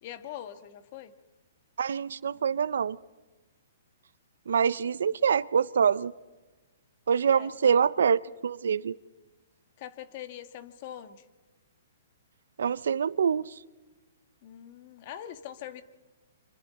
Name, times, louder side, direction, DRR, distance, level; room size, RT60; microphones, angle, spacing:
voice 1, 0.0-1.1 7.2-7.5 9.8-11.2 14.4-15.8, left 11 dB, 45° left, 10 dB, 1.6 m, -42 dB
voice 2, 1.8-3.0 4.5-6.1 7.1-9.0 12.6-13.5, right 7 dB, 80° right, 20 dB, 0.6 m, -25 dB
27.0 x 26.0 x 4.2 m, 1.2 s
hypercardioid pair, 145°, 0 cm